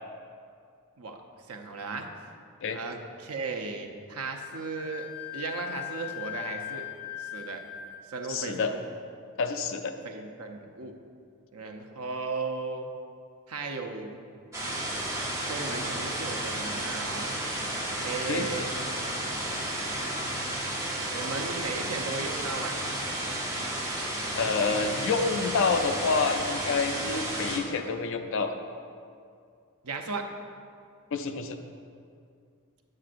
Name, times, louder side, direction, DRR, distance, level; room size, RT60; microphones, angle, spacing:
voice 1, 1.5-2.1 2.7-6.9 7.2-7.6 8.1-8.8 10.0-10.9 11.5-12.9 13.5-14.2 15.5-17.3 18.0-18.7 21.1-22.8 29.8-30.3, right 4 dB, 75° right, 4 dB, 0.6 m, -36 dB
Wind instrument woodwind instrument, 4.4-8.1, left 14 dB, 80° left, 1.5 m, -39 dB
voice 2, 8.3-8.7 9.4-9.9 18.3-18.5 24.4-28.6 31.1-31.6, left 4 dB, 60° left, 7 dB, 0.5 m, -28 dB
sound 1, 14.5-27.6, right 1 dB, 15° right, 0.8 m, -32 dB
8.6 x 7.5 x 2.5 m, 2.4 s
head